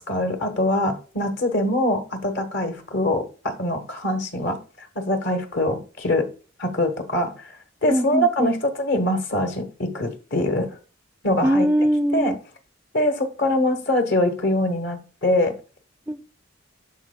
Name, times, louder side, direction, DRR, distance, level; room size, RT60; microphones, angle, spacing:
voice 1, 0.0-6.3 6.6-7.5 7.8-10.7 11.2-11.7 12.1-12.3 12.9-15.5, left 1 dB, 60° left, 1.3 m, -23 dB
voice 2, 7.9-8.5 11.4-12.4 16.1-16.3, equal, 10° right, 0.3 m, -21 dB
12.0 x 4.4 x 2.3 m
head